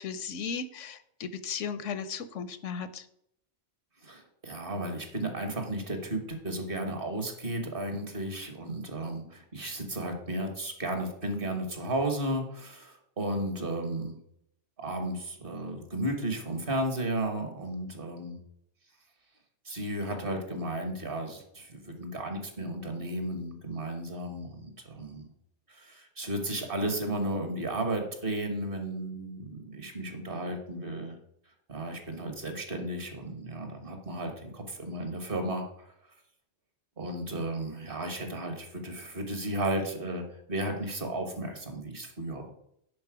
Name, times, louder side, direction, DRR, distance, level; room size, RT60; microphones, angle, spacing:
voice 1, 0.0-3.1, left 6 dB, 80° left, 13 dB, 1.0 m, -36 dB
voice 2, 4.0-14.2 14.8-18.4 19.6-25.3 25.7-31.2 31.7-35.9 37.0-42.5, right 1 dB, 50° right, 5 dB, 1.5 m, -34 dB
10.5 x 4.3 x 4.8 m, 0.74 s
omnidirectional pair, 1.3 m